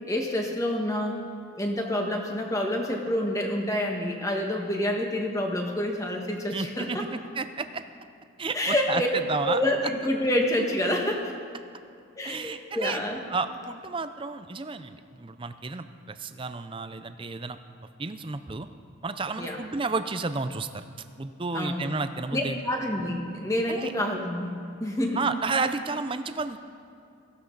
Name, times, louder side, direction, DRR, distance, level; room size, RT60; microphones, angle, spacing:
voice 1, 0.1-1.2 1.6-7.0 8.5-11.3 12.1-13.3 19.4-19.6 21.5-21.9 22.3-25.2, left 1 dB, 15° left, 1 dB, 1.5 m, -28 dB
voice 2, 6.5-7.8 8.4-9.0 9.3-9.6 12.2-13.0 13.3-17.6 18.0-18.7 19.0-20.8 21.2-22.6 23.7-23.9 25.2-26.6, right 3 dB, 25° right, 10 dB, 0.5 m, -31 dB
17.5 x 14.5 x 4.0 m, 2.5 s
head